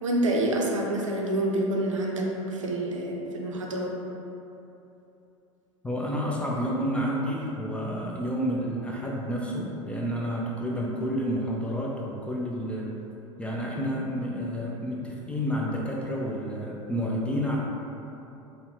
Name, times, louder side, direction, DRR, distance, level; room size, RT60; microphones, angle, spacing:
voice 1, 0.0-2.2 2.5-3.9, right 1 dB, 70° right, -1 dB, 0.5 m, -27 dB
voice 2, 5.8-12.9 13.4-17.6, equal, 5° left, -3 dB, 0.4 m, -30 dB
5.4 x 2.1 x 2.7 m, 2.9 s
figure-of-eight pair, 80°, 17 cm